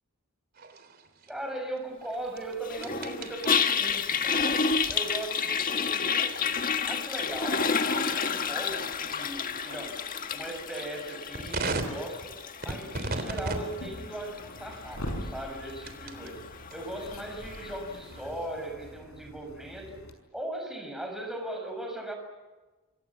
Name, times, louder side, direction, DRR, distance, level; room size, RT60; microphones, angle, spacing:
sound 1, 0.5-16.3 16.7-18.8, right 2 dB, 45° right, 3.5 m, -41 dB
voice 1, 1.3-6.5 6.8-10.0 10.3-12.3 12.6-16.4 16.7-20.0 20.3-22.1, right 1 dB, ahead, 3 dB, 6.4 m, -38 dB
Toilet flush, 2.6-17.9, left 6 dB, 40° left, 1.6 m, -31 dB
sound 2, 13.4-20.1, equal, 90° left, 5.8 m, -43 dB
27.0 x 26.0 x 7.3 m, 1.2 s
head